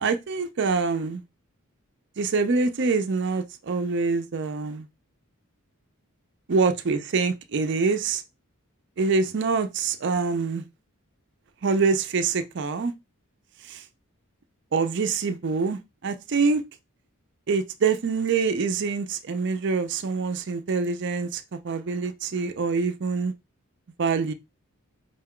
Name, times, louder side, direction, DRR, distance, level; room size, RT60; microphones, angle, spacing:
voice 1, 0.0-1.2 2.2-4.9 6.5-8.2 9.0-10.6 11.6-12.9 13.6-13.8 14.7-16.6 17.5-23.3 24.0-24.3, right 4 dB, 55° right, 0.5 m, -25 dB
5.1 x 2.2 x 3.6 m
head